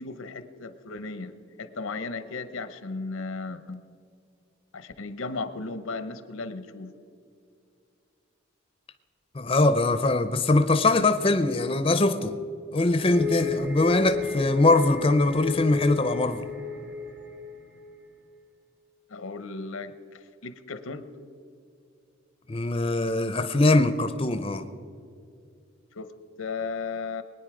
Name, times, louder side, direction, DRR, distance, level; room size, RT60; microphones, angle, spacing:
voice 1, 0.0-3.8 4.7-6.9 19.1-21.0 25.9-26.1 26.4-27.2, left 4 dB, 80° left, 0.9 m, -35 dB
voice 2, 9.3-12.3 12.7-16.4 22.5-24.6, left 2 dB, 25° left, 0.6 m, -22 dB
sound 1, 13.1-18.1, left 6 dB, 55° right, 1.6 m, -33 dB
22.0 x 9.8 x 4.9 m
head